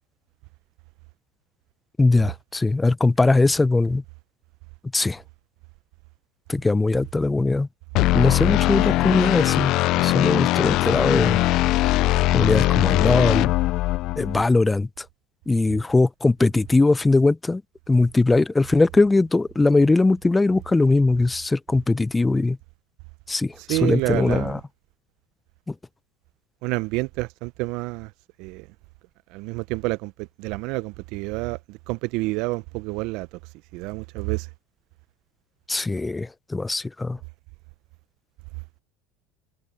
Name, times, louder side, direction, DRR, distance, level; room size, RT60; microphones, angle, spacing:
voice 1, 2.0-4.0 4.9-5.2 6.5-7.7 8.1-9.7 10.0-11.4 12.3-13.5 14.2-14.9 15.5-17.6 17.9-22.6 23.3-24.6 35.7-37.2, left 3 dB, 15° left, 0.6 m, -20 dB
sound 1, 8.0-14.4, left 18 dB, 55° left, 0.3 m, -20 dB
voice 2, 23.6-24.6 26.6-28.1 28.4-28.7 29.3-33.4 33.7-34.5, right 23 dB, 65° right, 0.5 m, -28 dB
hypercardioid pair, 95°, 0 cm